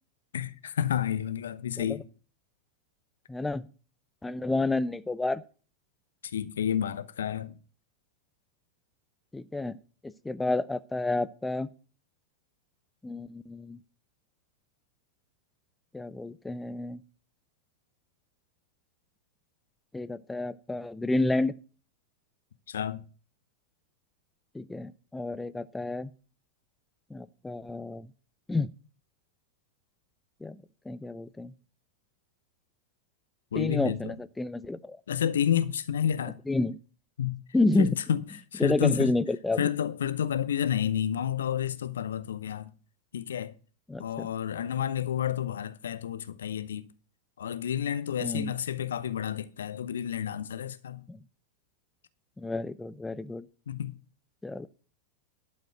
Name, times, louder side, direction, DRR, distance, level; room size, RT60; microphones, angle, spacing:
voice 1, 0.3-2.0 6.3-7.6 22.7-23.0 33.5-34.1 35.1-36.4 37.2-37.4 37.8-38.2 38.5-39.1 39.6-42.7 43.1-43.5 44.0-46.9 47.4-51.0 53.7-54.0, left 9 dB, 65° left, 0.7 m, -30 dB
voice 2, 3.3-3.7 4.2-5.4 9.3-9.8 10.0-11.7 13.0-13.8 15.9-17.0 19.9-21.5 24.5-26.1 27.1-28.1 28.5-28.7 30.4-31.5 33.5-35.0 36.5-36.8 37.5-37.9 38.6-39.7 43.9-44.3 48.2-48.5 51.1-51.2 52.4-53.5 54.4-54.7, left 2 dB, 10° left, 0.4 m, -30 dB
11.5 x 5.1 x 7.9 m
figure-of-eight pair, 90°, 0 cm